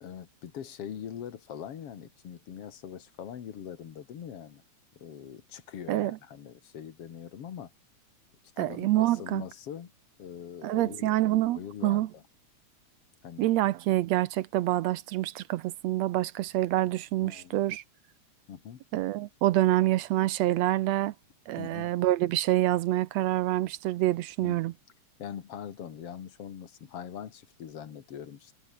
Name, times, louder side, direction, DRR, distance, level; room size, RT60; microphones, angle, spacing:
voice 1, 0.0-4.6 5.0-7.7 8.6-9.9 10.2-11.1 11.5-12.2 13.2-13.5 17.2-17.6 18.5-18.8 21.6-21.9 24.4-24.7 25.2-28.6, left 9 dB, 55° left, 2.6 m, -42 dB
voice 2, 8.6-9.4 10.6-12.1 13.4-17.8 18.9-21.1 21.5-24.7, right 15 dB, 75° right, 1.7 m, -26 dB
omnidirectional pair, 3.5 m